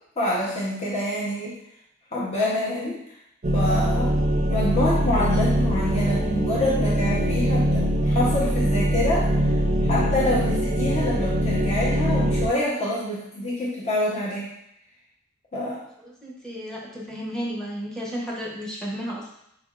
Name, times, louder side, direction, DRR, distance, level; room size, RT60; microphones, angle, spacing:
voice 1, 0.2-1.6 2.1-3.0 3.5-4.2 4.5-9.5 9.8-14.5 15.5-15.8, left 1 dB, 35° left, -6 dB, 0.8 m, -26 dB
sound 1, 3.4-12.5, equal, 35° right, 0.5 m, -22 dB
voice 2, 16.0-19.3, equal, 5° left, -5 dB, 0.8 m, -33 dB
4.5 x 3.4 x 2.4 m, 0.78 s
head